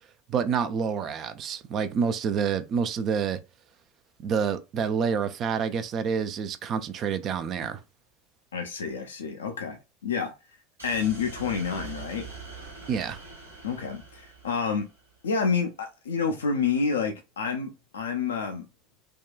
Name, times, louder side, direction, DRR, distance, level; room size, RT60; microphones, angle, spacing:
voice 1, 0.3-3.4 4.2-7.8 12.9-13.2, right 6 dB, 40° right, 0.4 m, -28 dB
voice 2, 8.5-9.8 10.0-10.3 10.8-12.3 13.6-14.9 15.2-18.7, left 5 dB, 75° left, 0.4 m, -28 dB
sound 1, 10.8-15.1, right 4 dB, 85° right, 1.0 m, -43 dB
3.5 x 2.2 x 2.3 m
figure-of-eight pair, 75°, 0 cm